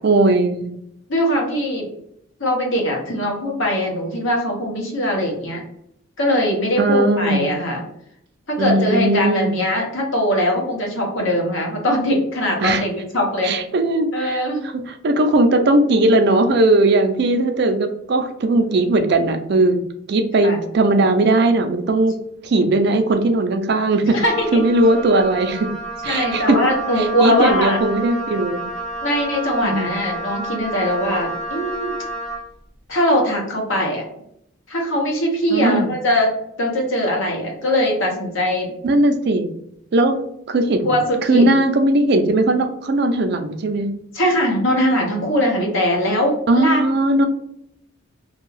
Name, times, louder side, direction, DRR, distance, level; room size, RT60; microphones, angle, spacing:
voice 1, 0.0-0.7 6.8-7.5 8.6-9.5 12.6-12.8 13.4-14.4 14.7-19.8 20.1-22.1 22.4-24.2 24.5-25.7 26.0-26.6 27.0-28.6 29.6-29.9 35.5-35.9 38.8-39.5 39.9-40.2 40.5-40.9 41.3-43.9 46.5-47.3, right 2 dB, 55° right, 7 dB, 0.4 m, -18 dB
voice 2, 1.1-1.8 2.4-5.6 6.2-7.8 8.5-13.5 14.1-14.6 20.4-20.6 24.1-24.6 26.0-27.8 29.0-31.9 32.9-34.1 34.7-36.3 36.6-38.7 40.8-41.5 44.1-46.8, equal, 75° left, 0 dB, 0.9 m, -21 dB
Wind instrument woodwind instrument, 24.2-32.5, right 2 dB, 5° left, 0.5 m, -30 dB
2.6 x 2.3 x 3.1 m, 0.74 s
head